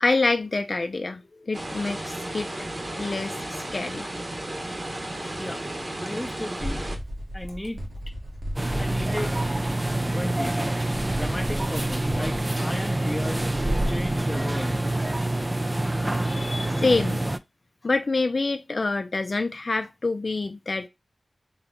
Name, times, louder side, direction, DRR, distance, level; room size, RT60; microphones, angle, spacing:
voice 1, 0.0-2.5 3.0-4.1 16.2-17.2 17.8-20.9, left 3 dB, 55° left, 0.4 m, -26 dB
sound 1, 1.5-7.0, right 1 dB, 35° right, 1.1 m, -34 dB
voice 2, 6.0-6.8 7.3-7.8 8.8-9.4 10.1-10.6 11.1-14.8, left 1 dB, 15° left, 0.7 m, -34 dB
sound 2, 6.6-12.4, equal, 80° right, 1.5 m, -37 dB
sound 3, 8.6-17.4, right 1 dB, 20° right, 0.4 m, -26 dB
3.9 x 2.9 x 3.3 m
wide cardioid pair, 75°, 0 cm